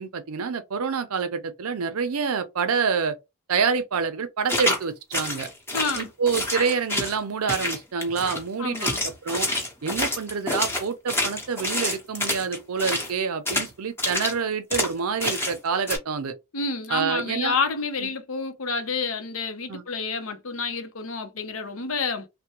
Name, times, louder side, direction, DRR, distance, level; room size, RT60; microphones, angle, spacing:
voice 1, 0.0-3.2 3.5-5.5 6.0-9.5 9.8-16.3 16.9-17.5 18.0-18.1 19.7-19.8, right 5 dB, 85° right, 0.6 m, -27 dB
sound 1, 4.5-4.8 5.1-7.2 7.5-8.4 8.7-13.1 13.5-13.7 14.0-14.3 14.7-14.9 15.2-15.6 15.9-16.0, left 1 dB, 10° left, 0.9 m, -27 dB
voice 2, 5.7-6.1 8.6-9.0 16.5-22.3, left 4 dB, 70° left, 0.7 m, -29 dB
3.3 x 2.2 x 2.9 m
head